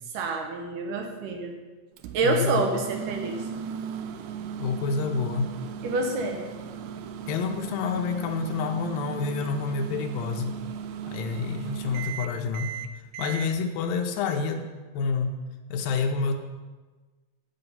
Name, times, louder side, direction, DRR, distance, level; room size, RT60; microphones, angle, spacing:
voice 1, 0.1-1.5 2.1-3.4 5.8-6.4, right 3 dB, 75° right, 3 dB, 2.3 m, -27 dB
Microwave oven, 2.0-13.5, right 8 dB, 90° right, 2.5 m, -37 dB
voice 2, 2.2-2.6 4.6-5.5 7.3-10.5 11.1-14.7 14.9-15.4 15.7-16.3, left 5 dB, 80° left, 5 dB, 2.4 m, -28 dB
8.5 x 7.9 x 5.5 m, 1.3 s
omnidirectional pair, 4.3 m